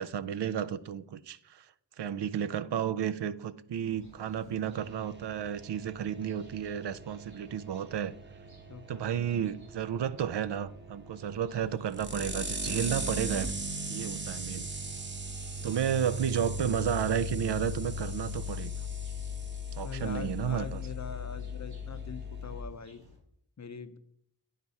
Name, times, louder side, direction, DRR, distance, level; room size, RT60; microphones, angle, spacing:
voice 1, 0.0-1.6 2.0-8.1 8.9-13.5 13.9-14.7 15.6-18.7 19.7-20.8, right 9 dB, 75° right, 0.5 m, -32 dB
sound 1, 3.9-23.2, right 1 dB, 60° right, 3.1 m, -57 dB
voice 2, 4.5-5.0 8.7-9.1 19.8-23.0 23.6-24.0, left 5 dB, 40° left, 0.7 m, -43 dB
sound 2, 4.7-22.6, left 1 dB, 25° right, 0.8 m, -38 dB
9.6 x 4.7 x 4.1 m
wide cardioid pair, 60°, 42 cm